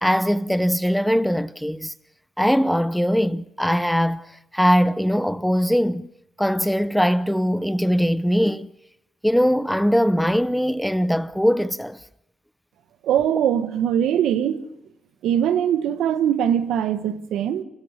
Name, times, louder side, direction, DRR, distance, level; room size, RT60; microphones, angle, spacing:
voice 1, 0.0-1.9 2.4-6.1 6.4-8.7 9.2-12.0, equal, ahead, 0.7 m, -21 dB
voice 2, 13.0-14.6 15.2-17.6, right 9 dB, 80° right, 1.4 m, -21 dB
27.5 x 15.5 x 6.7 m
cardioid pair, 90°, 0 cm